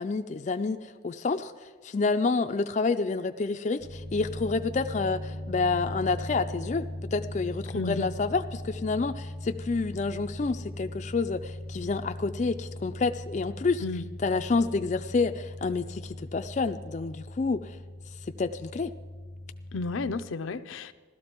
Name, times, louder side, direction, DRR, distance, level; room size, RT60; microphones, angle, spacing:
voice 1, 0.0-1.5 1.8-6.9 7.1-13.8 14.2-17.8 18.2-18.9, left 4 dB, 35° left, 7 dB, 0.4 m, -28 dB
sound 1, 3.8-20.2, left 1 dB, 85° right, 2.5 m, -39 dB
voice 2, 7.7-8.1 13.8-14.1 19.7-20.9, left 3 dB, 85° left, 11 dB, 0.6 m, -32 dB
15.5 x 13.0 x 4.5 m, 1.6 s
head